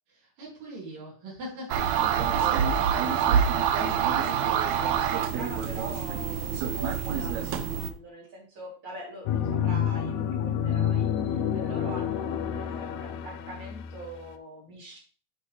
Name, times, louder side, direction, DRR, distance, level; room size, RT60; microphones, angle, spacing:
voice 1, 0.1-2.9, equal, 55° right, -6 dB, 3.7 m, -42 dB
sound 1, 1.7-7.9, right 8 dB, 75° right, 1.6 m, -26 dB
voice 2, 2.3-3.5 3.7-15.0, right 1 dB, 35° right, -4 dB, 3.8 m, -43 dB
sound 2, 9.3-14.3, left 8 dB, 85° left, 1.6 m, -29 dB
9.0 x 5.8 x 3.2 m, 0.39 s
omnidirectional pair, 3.9 m